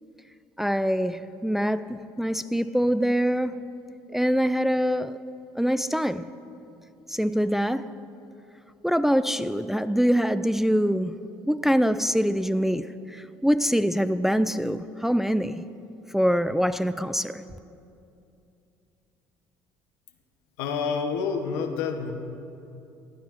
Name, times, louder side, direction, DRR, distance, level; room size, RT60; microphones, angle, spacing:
voice 1, 0.6-3.6 4.1-5.2 5.6-6.3 7.1-7.9 8.8-11.2 11.5-15.6 16.1-17.4, equal, 5° right, 0.3 m, -24 dB
voice 2, 20.6-22.1, left 5 dB, 85° left, 0.9 m, -28 dB
15.5 x 10.5 x 3.0 m
hypercardioid pair, 70°, 10 cm